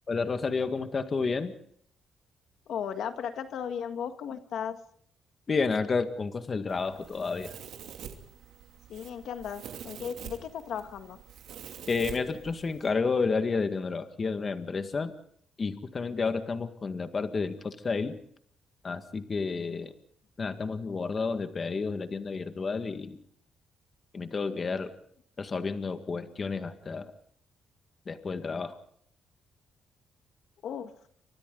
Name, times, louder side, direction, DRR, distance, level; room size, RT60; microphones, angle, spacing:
voice 1, 0.1-1.5 5.5-7.5 11.9-15.1 15.6-18.2 18.8-19.9 20.4-23.2 24.1-24.9 25.4-27.1 28.1-28.8, left 4 dB, 35° left, 8 dB, 1.8 m, -30 dB
voice 2, 2.7-4.8 8.9-11.2 30.6-30.9, left 8 dB, 70° left, 7 dB, 1.7 m, -36 dB
Domestic sounds home sounds, 6.7-12.9, right 8 dB, 80° right, 2.8 m, -46 dB
29.0 x 25.0 x 4.0 m, 0.64 s
cardioid pair, 110°, 0 cm